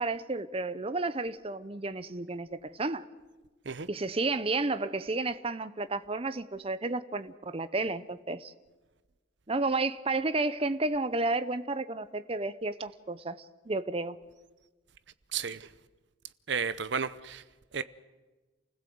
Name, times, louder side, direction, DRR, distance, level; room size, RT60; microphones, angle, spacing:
voice 1, 0.0-3.0 3.9-8.5 9.5-14.2, right 3 dB, 30° right, 0.6 m, -32 dB
voice 2, 15.3-15.7 16.5-17.4 17.7-17.8, right 6 dB, 60° right, 0.8 m, -32 dB
28.5 x 16.0 x 7.8 m
head